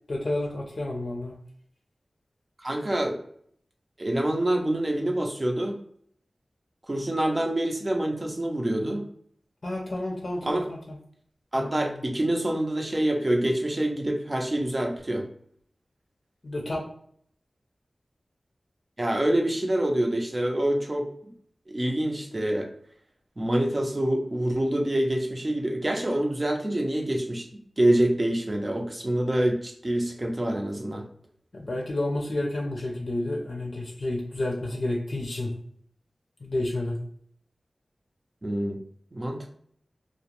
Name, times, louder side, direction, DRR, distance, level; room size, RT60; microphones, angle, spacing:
voice 1, 0.1-1.3 9.6-10.8 11.6-12.0 16.4-16.8 31.6-35.5 36.4-37.0, left 1 dB, 65° left, -1 dB, 0.5 m, -30 dB
voice 2, 2.6-3.2 4.0-5.8 6.9-9.0 10.4-10.7 11.5-15.2 19.0-21.3 21.7-22.7 23.4-27.5 27.8-31.0 38.4-38.8 39.1-39.5, right 1 dB, 35° right, 2 dB, 0.6 m, -26 dB
2.4 x 2.1 x 2.9 m, 0.62 s
cardioid pair, 50°, 0 cm